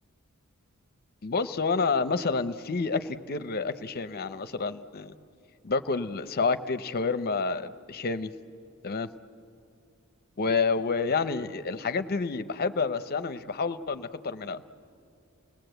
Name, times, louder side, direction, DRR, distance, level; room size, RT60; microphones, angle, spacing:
voice 1, 1.2-5.1 5.6-8.3 8.8-9.1 10.4-14.6, left 4 dB, 45° left, 11 dB, 0.7 m, -29 dB
29.0 x 19.5 x 8.0 m, 2.5 s
head